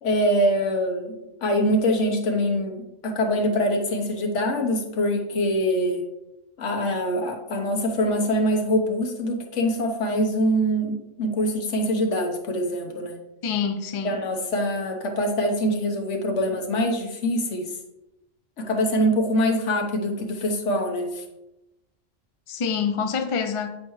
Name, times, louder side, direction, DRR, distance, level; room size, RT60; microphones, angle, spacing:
voice 1, 0.0-6.0 6.6-13.2 14.0-17.7 18.6-21.2, equal, 70° left, 3 dB, 1.3 m, -24 dB
voice 2, 13.4-14.2 22.5-23.7, left 6 dB, 45° left, 6 dB, 0.4 m, -26 dB
8.6 x 5.0 x 3.1 m, 0.93 s
omnidirectional pair, 1.3 m